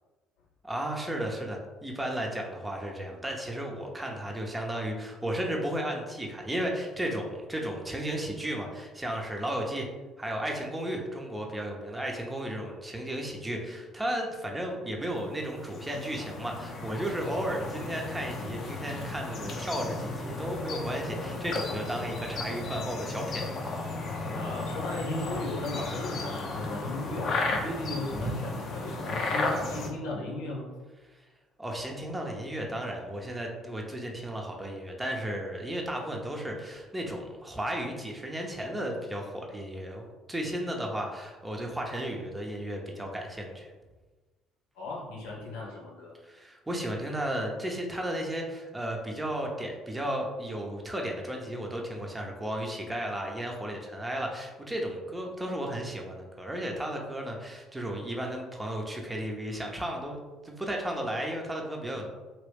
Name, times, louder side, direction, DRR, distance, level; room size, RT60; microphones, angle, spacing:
voice 1, 0.6-9.9 10.2-23.7 28.2-28.3 31.6-43.7 46.2-62.1, right 1 dB, 10° right, 0 dB, 0.8 m, -34 dB
sound 1, 15.1-29.9, left 3 dB, 55° left, 0.7 m, -34 dB
voice 2, 24.3-28.3 28.7-30.7 44.7-46.1, left 2 dB, 80° left, -4 dB, 1.0 m, -36 dB
3.0 x 3.0 x 3.3 m, 1.2 s
hypercardioid pair, 60°, 0 cm